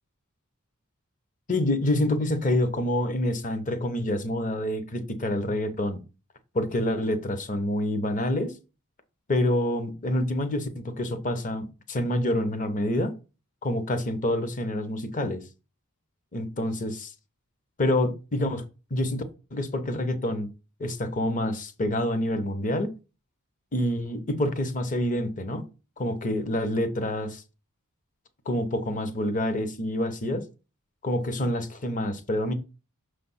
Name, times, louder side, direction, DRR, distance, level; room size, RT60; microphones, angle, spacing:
voice 1, 1.5-6.0 6.5-8.5 9.3-13.1 13.6-15.4 16.3-17.1 17.8-18.6 18.9-19.2 19.5-20.5 20.8-22.9 23.7-25.6 26.0-27.4 28.5-30.5 31.0-32.5, left 1 dB, 35° left, 0.8 m, -27 dB
6.1 x 3.3 x 5.6 m
head